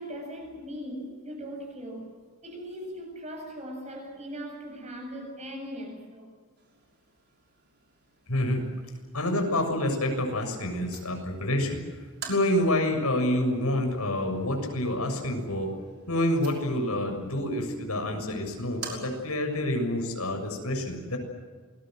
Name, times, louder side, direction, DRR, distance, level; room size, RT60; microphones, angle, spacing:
voice 1, 0.0-6.3, equal, 30° right, 7.9 m, -39 dB
sound 1, 6.6-19.6, right 6 dB, 50° right, 6.0 m, -49 dB
voice 2, 8.3-8.6 9.1-11.8 12.3-15.7 16.1-21.2, left 1 dB, 85° left, 7.0 m, -27 dB
28.5 x 21.5 x 7.8 m
head